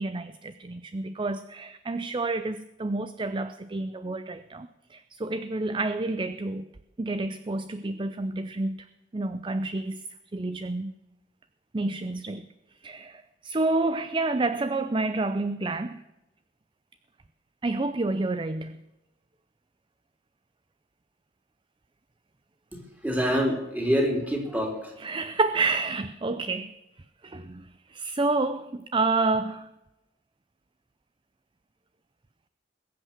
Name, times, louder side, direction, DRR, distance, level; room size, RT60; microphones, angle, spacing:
voice 1, 0.0-6.6 7.0-8.8 9.1-10.0 10.3-10.9 11.7-12.5 12.8-16.0 17.6-18.8 25.0-26.7 27.2-29.7, right 3 dB, 25° right, 12 dB, 0.5 m, -29 dB
voice 2, 22.7-24.9, equal, 10° right, 1 dB, 3.4 m, -26 dB
21.0 x 8.2 x 7.3 m, 0.98 s
head